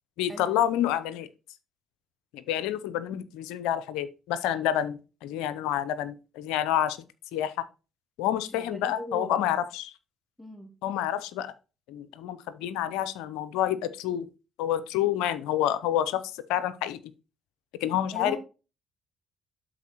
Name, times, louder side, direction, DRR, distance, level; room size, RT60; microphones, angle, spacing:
voice 1, 0.2-1.3 2.3-7.0 7.3-7.7 8.2-9.9 10.8-11.5 11.9-14.3 14.6-16.2 16.5-17.0 17.8-18.4, left 11 dB, 80° left, 0.6 m, -28 dB
voice 2, 8.5-9.4 10.4-10.8 18.1-18.4, left 1 dB, 5° left, 2.4 m, -38 dB
12.0 x 4.2 x 2.9 m
hypercardioid pair, 55°, 0 cm